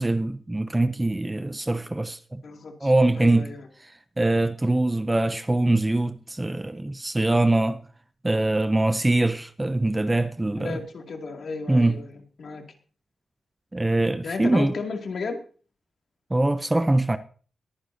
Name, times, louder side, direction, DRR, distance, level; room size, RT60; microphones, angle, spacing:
voice 1, 0.0-2.4 2.8-3.5 4.2-7.8 8.2-10.8 11.7-12.0 13.7-14.7 16.3-17.2, right 2 dB, 10° right, 0.5 m, -23 dB
voice 2, 2.4-3.6 10.6-12.6 14.2-15.4, left 4 dB, 55° left, 2.2 m, -34 dB
22.0 x 9.8 x 2.7 m
wide cardioid pair, 170°, 0 cm